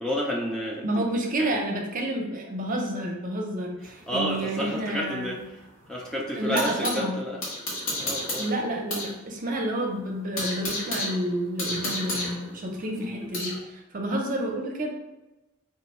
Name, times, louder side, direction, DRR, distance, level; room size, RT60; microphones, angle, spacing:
voice 1, 0.0-1.0 1.4-1.6 4.1-5.6 5.9-7.4 7.9-8.7 13.0-13.3, equal, 5° left, -3 dB, 0.4 m, -31 dB
voice 2, 0.8-5.3 6.3-7.2 8.4-14.9, right 1 dB, 45° right, 1 dB, 0.6 m, -29 dB
sound 1, 3.8-7.1 7.4-9.1 9.4-9.5 9.9-13.6, left 1 dB, 85° left, 1.4 m, -33 dB
3.6 x 2.2 x 4.0 m, 1.0 s
head